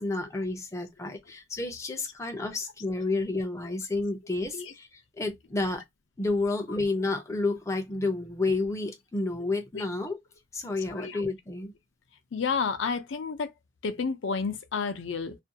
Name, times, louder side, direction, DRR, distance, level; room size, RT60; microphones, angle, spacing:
voice 1, 0.0-4.9 5.2-5.8 6.2-10.2 10.5-11.7, left 2 dB, 15° left, 0.4 m, -30 dB
voice 2, 12.3-13.5 13.8-15.4, left 5 dB, 80° left, 0.5 m, -30 dB
2.5 x 2.2 x 2.7 m
head